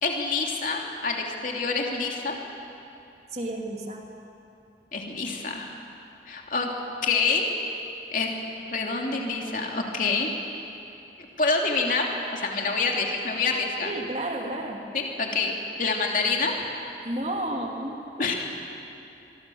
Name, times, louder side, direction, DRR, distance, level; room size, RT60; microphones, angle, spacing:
voice 1, 0.0-2.4 4.9-5.7 6.3-6.7 7.0-7.5 8.1-8.3 8.7-10.3 11.4-13.9 14.9-15.5 15.8-16.6 18.2-18.3, left 4 dB, 50° left, 0 dB, 2.9 m, -26 dB
voice 2, 3.3-4.1 13.8-14.8 17.0-18.3, right 1 dB, 40° right, 1 dB, 2.8 m, -32 dB
25.5 x 23.0 x 7.2 m, 2.8 s
head